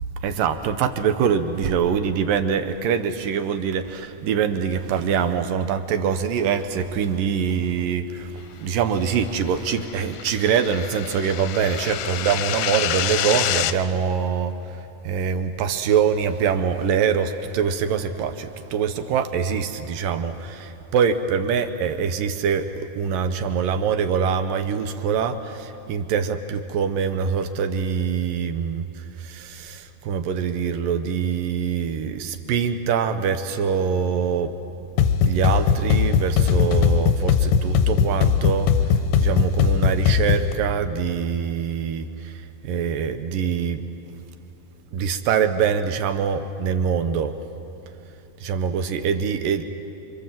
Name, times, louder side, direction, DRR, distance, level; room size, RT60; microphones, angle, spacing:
voice 1, 0.2-14.8 15.0-34.5 35.2-43.9 44.9-47.4 48.4-49.7, right 7 dB, 75° right, 9 dB, 2.1 m, -24 dB
sound 1, 9.3-13.7, left 12 dB, 90° left, 3.1 m, -28 dB
sound 2, 35.0-40.5, left 6 dB, 70° left, 2.1 m, -19 dB
27.5 x 26.5 x 7.6 m, 2.9 s
omnidirectional pair, 5.1 m